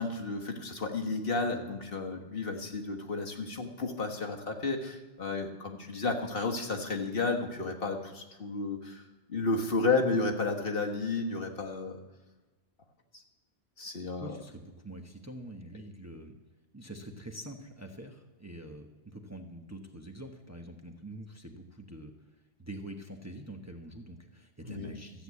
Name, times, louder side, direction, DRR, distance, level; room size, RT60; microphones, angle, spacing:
voice 1, 0.0-12.0 13.8-14.4 24.6-24.9, left 3 dB, 55° left, 2 dB, 1.6 m, -32 dB
voice 2, 14.2-16.4 16.7-25.2, right 1 dB, 15° right, 3 dB, 1.0 m, -45 dB
14.0 x 8.1 x 8.2 m, 1.2 s
omnidirectional pair, 1.2 m